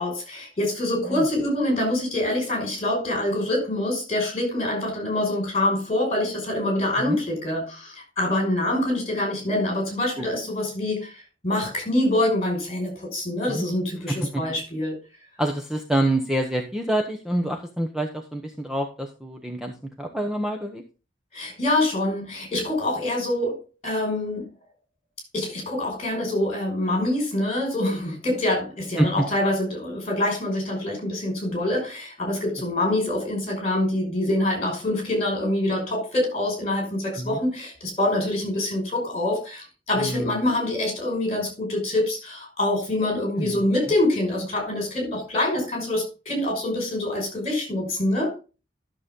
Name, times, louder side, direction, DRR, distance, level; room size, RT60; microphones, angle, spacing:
voice 1, 0.0-15.0 21.3-23.6 23.8-24.5 25.3-48.4, left 1 dB, 30° left, 5.7 m, -25 dB
voice 2, 14.1-14.4 15.4-20.8 29.0-29.1 37.2-37.4 40.0-40.5 43.4-43.6, right 1 dB, 5° right, 0.9 m, -27 dB
12.5 x 6.8 x 3.8 m
head